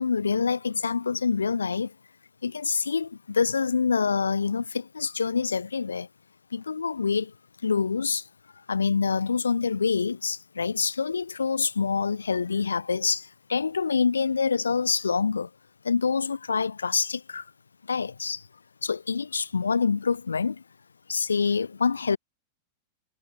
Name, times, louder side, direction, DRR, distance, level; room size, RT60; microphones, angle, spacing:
voice 1, 0.0-1.9 2.4-6.1 6.5-7.3 7.6-8.3 8.7-15.5 15.8-17.5 17.9-18.4 18.8-20.6 21.1-22.2, left 5 dB, 75° left, 0.5 m, -26 dB
figure-of-eight pair, 90°, 0 cm